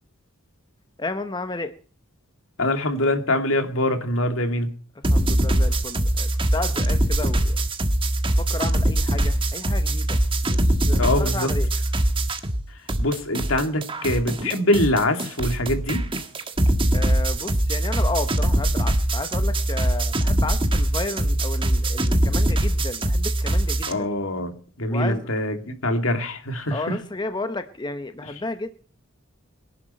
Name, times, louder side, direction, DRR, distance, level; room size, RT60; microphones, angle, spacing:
voice 1, 1.0-1.7 5.0-7.6 8.3-11.7 16.9-24.1 24.9-25.3 26.7-28.7, left 2 dB, 20° left, 9 dB, 0.9 m, -32 dB
voice 2, 2.6-4.7 11.0-11.5 13.0-16.0 23.9-24.5 24.8-27.0, left 1 dB, 70° left, 6 dB, 2.6 m, -23 dB
sound 1, 5.0-12.6 12.9-23.9, right 1 dB, 25° right, 1.5 m, -22 dB
22.5 x 11.0 x 4.4 m, 0.42 s
head